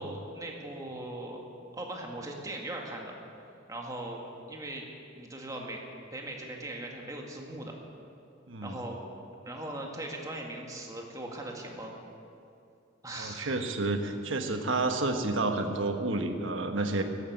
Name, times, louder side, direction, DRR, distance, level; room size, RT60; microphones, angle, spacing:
voice 1, 0.0-1.4 1.7-3.1 3.7-4.2 4.5-4.9 5.2-5.8 6.1-7.8 8.6-9.0 9.5-11.9 13.0-13.6, right 1 dB, 20° right, 0 dB, 1.9 m, -39 dB
voice 2, 13.2-17.0, right 2 dB, 80° right, 6 dB, 1.3 m, -30 dB
14.0 x 12.0 x 8.2 m, 2.5 s
head